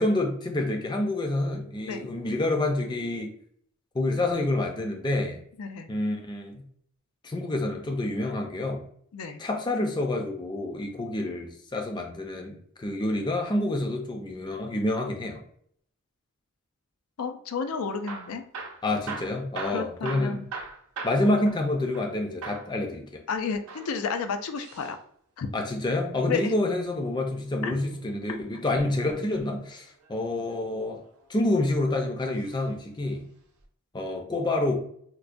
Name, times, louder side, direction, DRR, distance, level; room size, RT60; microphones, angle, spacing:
voice 1, 0.0-3.3 3.9-5.4 5.9-6.6 7.2-8.8 9.4-15.4 18.8-20.4 21.0-23.2 25.5-31.0 31.3-33.2 33.9-34.7, left 2 dB, 20° left, 3 dB, 0.4 m, -28 dB
voice 2, 5.6-5.9 9.1-9.4 17.2-18.4 19.7-20.5 23.3-25.0 25.4-25.5 26.3-26.5 27.6-27.7 28.3-28.4, left 5 dB, 90° left, 7 dB, 0.4 m, -31 dB
Hammer / Drill, 17.9-22.1 22.4-22.7 23.5-25.0 26.7-28.0 29.7-30.1 30.8-31.7 32.4-32.6 32.9-33.0 33.6-33.7, right 4 dB, 85° right, 0.6 m, -41 dB
4.4 x 2.1 x 2.5 m, 0.63 s
head